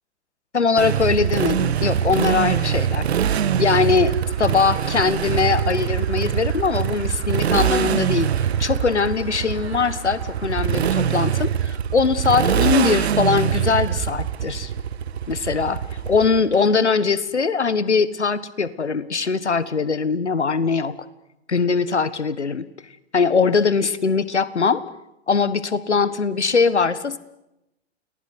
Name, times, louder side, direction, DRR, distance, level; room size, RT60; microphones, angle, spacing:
voice 1, 0.5-3.1 3.6-8.3 8.6-14.7 15.3-21.0 21.5-22.7 23.1-24.8 25.3-27.2, left 5 dB, 85° left, 16 dB, 1.6 m, -21 dB
Motorcycle, 0.8-16.6, right 9 dB, 70° right, 1.4 m, -23 dB
sound 1, 3.9-11.3, right 5 dB, 40° right, 7.2 m, -43 dB
sound 2, 14.0-15.1, right 7 dB, 15° right, 7.0 m, -38 dB
30.0 x 20.0 x 8.1 m, 0.91 s
figure-of-eight pair, 100°, 33 cm